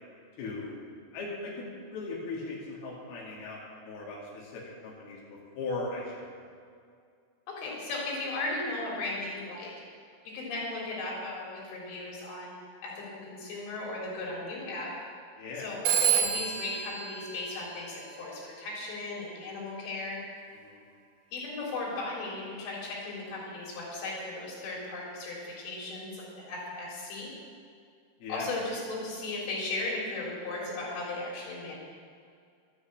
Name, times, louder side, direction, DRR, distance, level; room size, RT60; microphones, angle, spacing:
voice 1, 0.4-0.8 1.1-6.3 15.4-15.7 20.6-20.8 28.2-28.5, left 3 dB, 55° left, -5 dB, 4.1 m, -38 dB
voice 2, 7.5-9.7 10.3-12.5 12.8-14.9 15.6-20.2 21.3-27.3 28.3-31.8, left 2 dB, 80° left, -3 dB, 6.0 m, -36 dB
Telephone, 15.8-18.3, right 8 dB, 70° right, 2.1 m, -29 dB
13.0 x 9.8 x 8.6 m, 2.2 s
omnidirectional pair, 5.5 m